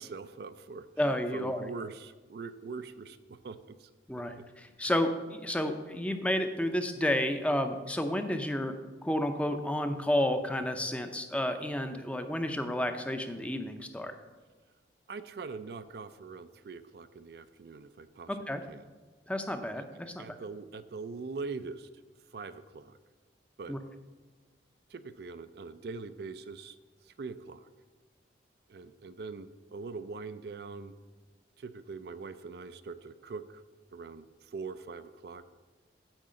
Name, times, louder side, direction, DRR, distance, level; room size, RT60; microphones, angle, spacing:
voice 1, 0.0-3.9 4.4-4.5 4.8-4.9 15.1-18.4 18.7-18.8 19.7-19.9 20.2-21.9 22.3-23.0 23.6-23.8 24.9-26.8 27.0-27.7 28.7-30.9 31.6-33.6 33.9-35.4, right 4 dB, 55° right, 12 dB, 0.4 m, -42 dB
voice 2, 1.0-1.6 4.1-8.7 9.0-14.1 18.3-18.6 19.3-20.3 23.7-23.8, left 1 dB, 5° left, 7 dB, 0.5 m, -31 dB
9.0 x 4.7 x 7.5 m, 1.3 s
head